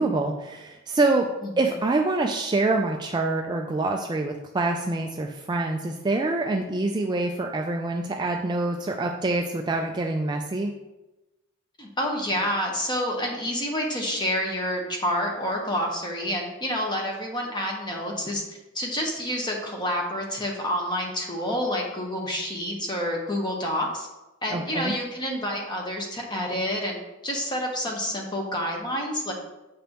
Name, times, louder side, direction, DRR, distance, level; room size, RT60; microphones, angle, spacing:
voice 1, 0.0-1.3 1.6-10.7 24.5-24.9, right 2 dB, 20° right, 2 dB, 0.3 m, -26 dB
voice 2, 11.8-24.1 24.4-27.0 27.2-29.3, equal, 20° left, 0 dB, 1.1 m, -28 dB
7.6 x 5.1 x 3.0 m, 1.0 s
head